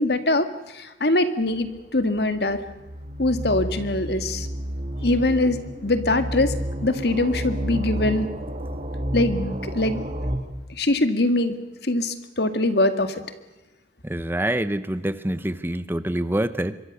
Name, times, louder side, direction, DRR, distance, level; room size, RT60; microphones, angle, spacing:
voice 1, 0.0-2.6 3.2-4.5 5.0-6.5 6.8-8.3 9.1-10.0 10.7-11.6 11.8-13.2, left 2 dB, 60° left, 9 dB, 1.9 m, -23 dB
sound 1, 1.6-10.4, equal, 40° right, 2.7 m, -31 dB
voice 2, 14.0-16.8, right 1 dB, 10° right, 13 dB, 0.7 m, -26 dB
25.5 x 23.0 x 6.6 m, 1.1 s
head